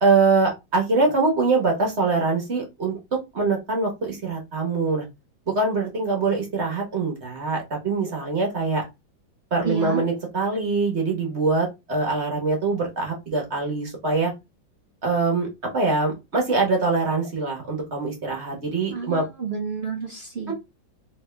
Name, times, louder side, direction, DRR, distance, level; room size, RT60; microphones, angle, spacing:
voice 1, 0.0-3.0 3.3-5.0 5.5-8.8 9.5-14.3 15.0-19.2 20.5-20.6, right 3 dB, 40° right, 1.2 m, -23 dB
voice 2, 9.6-10.1 18.9-20.5, right 5 dB, 75° right, 0.5 m, -30 dB
3.4 x 3.0 x 3.3 m
omnidirectional pair, 2.1 m